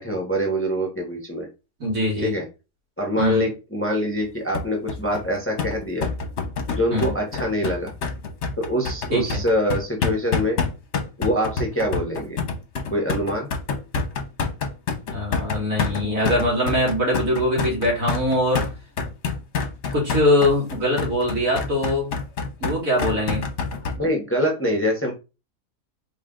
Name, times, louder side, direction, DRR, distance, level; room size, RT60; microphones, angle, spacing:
voice 1, 0.0-1.5 2.2-2.4 3.0-6.1 6.7-7.9 8.6-10.6 11.2-12.4 12.9-13.5 24.0-25.1, equal, 10° left, 0 dB, 0.9 m, -24 dB
voice 2, 1.8-2.3 3.2-3.5 6.9-7.1 9.1-9.4 15.1-18.6 19.9-22.1 22.6-23.5, left 1 dB, 70° right, -3 dB, 2.7 m, -22 dB
sound 1, 4.5-24.0, left 4 dB, 55° left, 1.1 m, -27 dB
4.3 x 3.2 x 3.8 m, 0.29 s
omnidirectional pair, 1.5 m